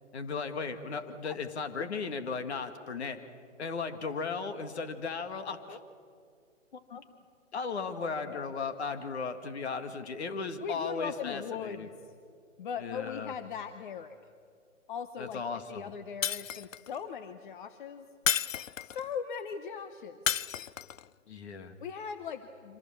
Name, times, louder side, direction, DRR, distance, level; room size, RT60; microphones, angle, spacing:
voice 1, 0.1-3.2 3.6-5.8 6.9-7.0 7.5-11.9 12.8-13.3 15.2-15.9 21.3-21.7, left 5 dB, 55° left, 9 dB, 2.2 m, -36 dB
voice 2, 7.9-8.5 10.6-12.1 12.6-14.2 14.9-15.4 15.7-18.1 18.8-20.2 21.8-22.8, left 7 dB, 40° left, 10 dB, 1.0 m, -39 dB
Shatter, 16.2-17.0 18.3-19.1 20.3-21.0, left 8 dB, 80° left, 0.6 m, -31 dB
26.5 x 25.5 x 7.4 m, 2.3 s
figure-of-eight pair, 135°, 38 cm